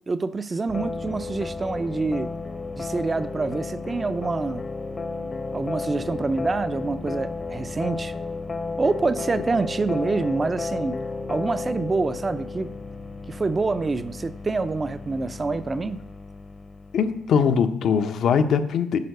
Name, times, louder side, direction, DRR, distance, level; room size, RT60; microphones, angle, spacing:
voice 1, 0.1-2.3 2.7-4.6 5.5-8.1 8.8-11.0 11.3-12.7 13.3-16.0, right 3 dB, 30° right, 0.5 m, -26 dB
sound 1, 0.7-17.4, left 3 dB, 35° left, 0.8 m, -33 dB
voice 2, 16.9-19.0, left 6 dB, 70° left, 0.8 m, -21 dB
11.0 x 4.5 x 6.6 m
cardioid pair, 90°, 0 cm